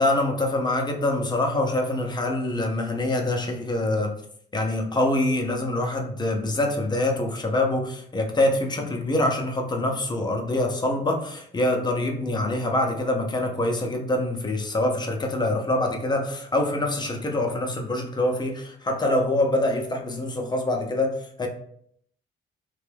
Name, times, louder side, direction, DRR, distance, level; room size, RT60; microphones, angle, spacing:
voice 1, 0.0-4.1 4.5-21.5, left 1 dB, 20° left, 1 dB, 0.6 m, -25 dB
2.8 x 2.2 x 3.2 m, 0.67 s
cardioid pair, 90°, 20 cm